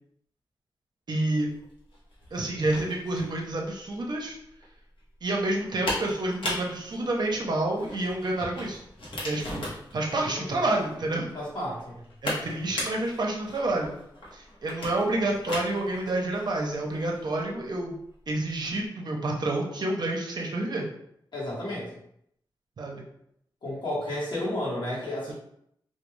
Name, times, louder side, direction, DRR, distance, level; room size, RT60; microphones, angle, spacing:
voice 1, 1.1-1.5 2.3-4.4 5.2-8.8 9.2-9.7 9.9-11.3 12.2-13.9 14.3-18.0 18.3-20.9 22.8-23.0 25.3-25.4, right 2 dB, 55° right, -1 dB, 0.6 m, -29 dB
sound 1, 1.5-18.9, left 1 dB, 85° left, 0.9 m, -38 dB
voice 2, 10.2-10.7 11.3-12.0 21.3-21.9 23.6-25.3, left 1 dB, 60° left, -5 dB, 1.1 m, -32 dB
2.3 x 2.3 x 3.1 m, 0.74 s
wide cardioid pair, 120°, 9 cm